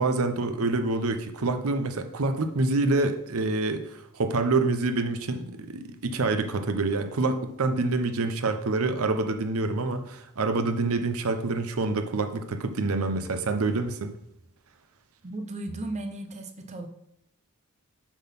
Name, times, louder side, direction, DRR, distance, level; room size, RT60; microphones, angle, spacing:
voice 1, 0.0-14.1, right 3 dB, 75° right, 7 dB, 0.7 m, -27 dB
voice 2, 15.2-16.9, right 2 dB, 30° right, 6 dB, 0.7 m, -35 dB
7.1 x 3.8 x 5.8 m, 0.79 s
head